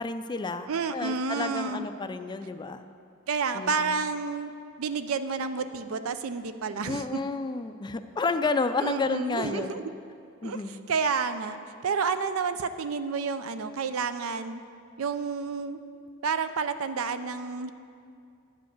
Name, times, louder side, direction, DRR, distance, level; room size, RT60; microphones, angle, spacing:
voice 1, 0.0-2.8 3.5-4.0 6.9-9.8 10.4-10.8, left 3 dB, 20° left, 10 dB, 0.3 m, -31 dB
voice 2, 0.7-1.9 3.3-4.5 4.8-7.2 8.8-9.9 10.4-14.6 15.0-15.8 16.2-17.7, right 5 dB, 75° right, 11 dB, 0.5 m, -30 dB
10.0 x 5.2 x 8.0 m, 2.4 s
head